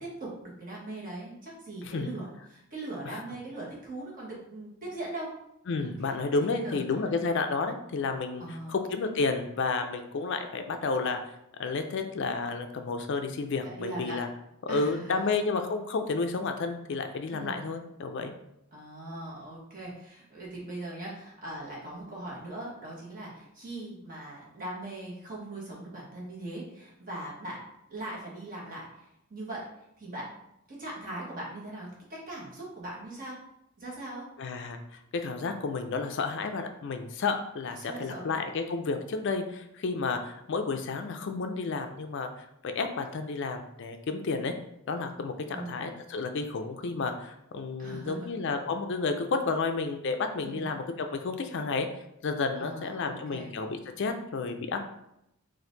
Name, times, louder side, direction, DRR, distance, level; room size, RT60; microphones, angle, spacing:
voice 1, 0.0-5.3 5.8-6.8 8.4-8.8 13.8-14.2 14.7-15.2 17.3-17.6 18.7-29.6 30.0-30.4 30.7-33.4 33.8-34.3 37.8-38.3 45.5-45.9 47.8-48.3 50.4-50.7 52.6-53.5, right 2 dB, 40° right, -5 dB, 1.4 m, -40 dB
voice 2, 5.7-8.4 8.7-11.2 11.6-14.3 14.6-18.3 34.4-44.5 44.9-51.9 52.2-54.8, left 4 dB, 60° left, 6 dB, 0.4 m, -31 dB
4.3 x 2.6 x 3.8 m, 0.80 s
head